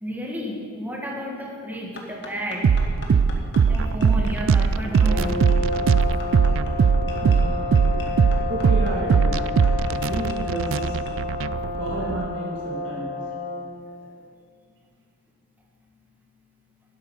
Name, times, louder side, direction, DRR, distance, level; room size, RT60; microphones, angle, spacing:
voice 1, 0.0-2.7 3.7-5.4, equal, 10° right, -1 dB, 1.8 m, -31 dB
sound 1, 2.0-11.2, left 2 dB, 60° left, 1.6 m, -41 dB
sound 2, 2.6-12.3, right 6 dB, 80° right, 0.3 m, -20 dB
sound 3, 4.8-13.8, left 3 dB, 25° right, 4.1 m, -30 dB
voice 2, 7.1-9.4 9.7-11.0 11.7-13.2 13.7-14.3, right 2 dB, 65° right, -4 dB, 2.4 m, -33 dB
12.0 x 11.5 x 5.6 m, 2.1 s
head